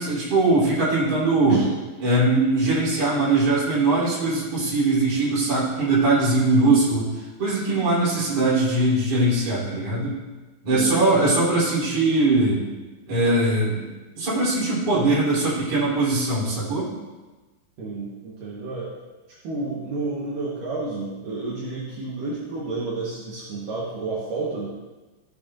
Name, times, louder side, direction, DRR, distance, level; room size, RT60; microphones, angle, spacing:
voice 1, 0.0-1.6 2.0-10.3 10.6-12.6 13.1-13.8 14.1-16.9, right 2 dB, 45° right, -9 dB, 4.7 m, -21 dB
voice 2, 10.7-11.0 17.8-18.9 19.4-24.7, right 3 dB, 70° right, -6 dB, 3.1 m, -30 dB
16.5 x 8.1 x 2.7 m, 1.2 s
omnidirectional pair, 4.1 m